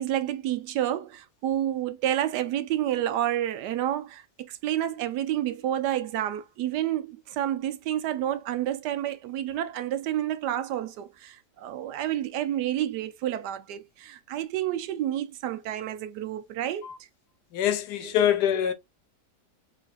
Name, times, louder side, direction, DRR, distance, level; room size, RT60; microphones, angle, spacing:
voice 1, 0.0-16.9 18.0-18.1 18.5-18.6, right 12 dB, 80° right, 1.2 m, -29 dB
voice 2, 17.5-18.7, left 10 dB, 80° left, 1.3 m, -24 dB
3.8 x 3.4 x 2.3 m
omnidirectional pair, 1.8 m